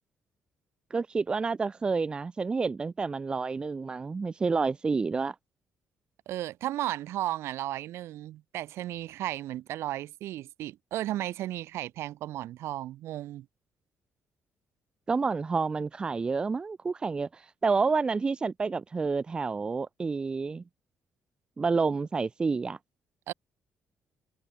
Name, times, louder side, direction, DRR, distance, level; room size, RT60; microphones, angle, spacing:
voice 1, 0.9-5.3 15.1-20.6 21.6-22.8, right 4 dB, 20° right, 0.7 m, -29 dB
voice 2, 6.3-13.5 23.3-23.4, right 14 dB, 80° right, 2.0 m, -34 dB
cardioid pair, 165°, 4 cm